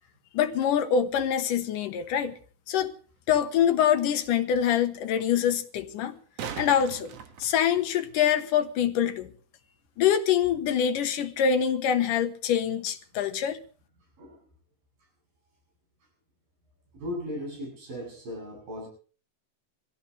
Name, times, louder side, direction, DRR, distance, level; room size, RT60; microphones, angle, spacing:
voice 1, 0.3-2.3 2.7-2.9 3.3-6.2 6.6-7.1 7.4-9.3 10.0-13.6, left 8 dB, 75° left, 2.5 m, -25 dB
sound 1, 3.2-3.3 6.0-8.2 11.0-11.1, right 7 dB, 55° right, 2.1 m, -40 dB
voice 2, 16.9-18.9, left 1 dB, 75° right, 9.8 m, -37 dB
24.0 x 15.5 x 3.3 m
omnidirectional pair, 4.0 m